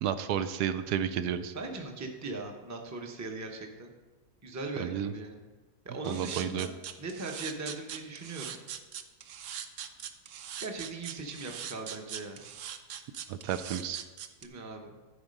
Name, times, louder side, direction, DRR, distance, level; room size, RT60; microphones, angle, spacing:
voice 1, 0.0-1.5 4.8-5.1 6.1-6.7 13.3-14.0, right 9 dB, 80° right, 11 dB, 1.1 m, -31 dB
voice 2, 1.5-3.9 4.4-5.5 5.8-8.6 10.6-12.4 14.4-15.0, right 3 dB, 15° right, 2 dB, 0.6 m, -39 dB
sound 1, 6.0-14.5, right 9 dB, 65° right, 0.8 m, -41 dB
11.5 x 4.9 x 5.3 m, 1.2 s
omnidirectional pair, 1.7 m